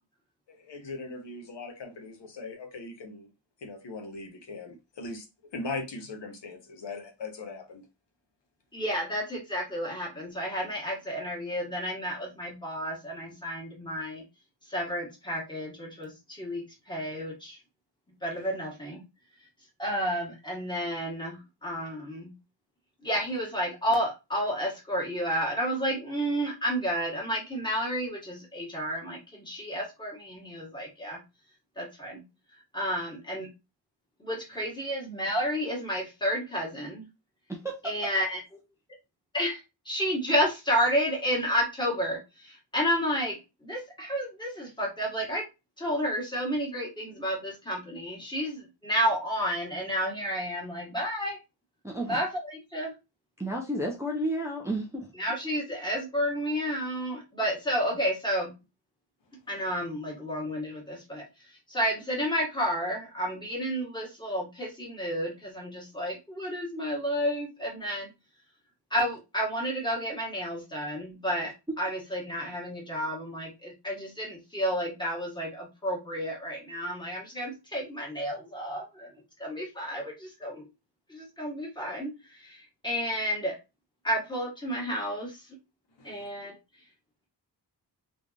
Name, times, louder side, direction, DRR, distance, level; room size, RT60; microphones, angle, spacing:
voice 1, 0.5-3.3 3.6-5.3 5.5-7.8 18.3-18.5 34.6-34.7 86.0-86.2, left 3 dB, 75° left, 1.1 m, -40 dB
voice 2, 8.7-14.2 14.7-17.6 18.2-19.0 19.8-22.3 23.0-31.2 31.8-32.2 32.7-33.5 34.2-37.1 37.8-38.4 39.3-45.4 45.8-51.4 52.0-52.9 55.2-58.5 59.5-61.2 61.7-68.1 68.9-71.5 71.8-79.1 79.4-80.6 81.1-83.5 84.0-85.4 86.0-86.5, equal, 10° left, 1.8 m, -31 dB
voice 3, 37.5-37.9 51.8-52.2 53.4-55.1, right 1 dB, 5° right, 0.7 m, -32 dB
3.8 x 3.3 x 2.5 m
wide cardioid pair, 140°, 43 cm